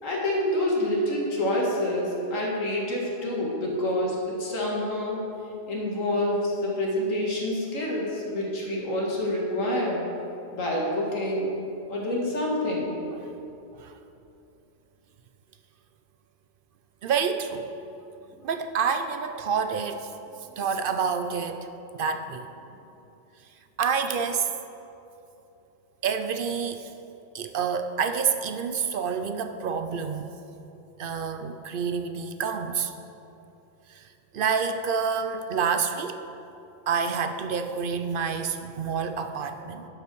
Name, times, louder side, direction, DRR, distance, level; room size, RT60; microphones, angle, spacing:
voice 1, 0.0-5.2 5.7-10.0 10.5-11.5 11.9-12.9, left 1 dB, 85° left, -3 dB, 2.2 m, -27 dB
voice 2, 17.0-17.7 18.4-20.1 20.6-21.7 22.0-22.5 23.8-24.5 26.0-26.9 27.3-30.3 31.0-32.9 33.9-34.0 34.3-36.2 36.9-39.9, right 6 dB, 60° right, 9 dB, 0.6 m, -28 dB
11.0 x 5.8 x 6.1 m, 2.8 s
omnidirectional pair, 1.3 m